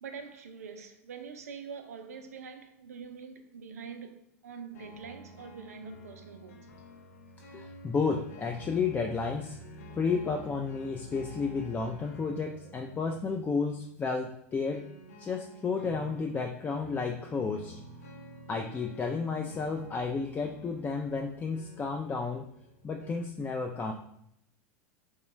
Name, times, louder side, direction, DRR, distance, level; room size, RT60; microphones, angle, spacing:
voice 1, 0.0-6.6, right 6 dB, 85° right, 0.4 m, -44 dB
sound 1, 4.7-23.3, right 1 dB, 90° left, 0.6 m, -50 dB
voice 2, 7.5-9.6 10.0-14.8 15.2-17.7 18.5-22.4 22.8-23.9, left 4 dB, 20° left, 0.3 m, -32 dB
3.0 x 2.2 x 3.1 m
hypercardioid pair, 95°, 8 cm